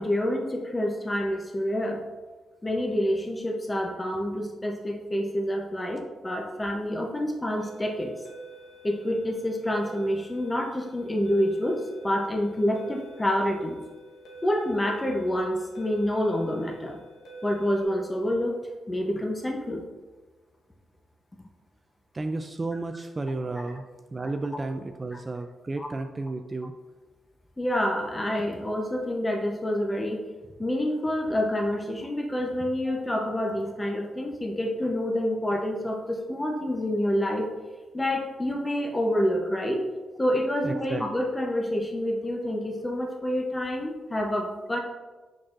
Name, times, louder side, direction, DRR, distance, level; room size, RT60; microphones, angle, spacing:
voice 1, 0.0-2.0 2.6-8.1 8.8-13.8 14.4-17.0 17.4-18.6 18.9-19.8 25.8-25.9 27.6-30.2 30.6-37.5 37.9-39.8 40.2-44.8, equal, 20° left, 1 dB, 0.7 m, -27 dB
sound 1, 7.6-17.8, right 1 dB, 90° left, 1.1 m, -48 dB
voice 2, 22.1-23.8 24.1-26.7 32.8-32.9 40.6-41.0, right 2 dB, 25° right, 6 dB, 0.3 m, -32 dB
6.2 x 6.1 x 2.5 m, 1.3 s
cardioid pair, 100°, 0 cm